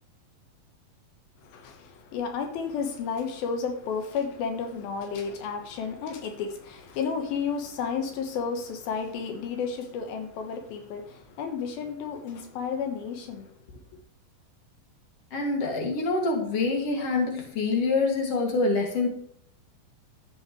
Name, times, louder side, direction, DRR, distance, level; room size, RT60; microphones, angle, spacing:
voice 1, 1.4-13.5, left 6 dB, 85° left, 3.1 m, -32 dB
voice 2, 15.3-19.1, left 3 dB, 45° left, 3.1 m, -26 dB
13.0 x 8.7 x 3.2 m
omnidirectional pair, 4.2 m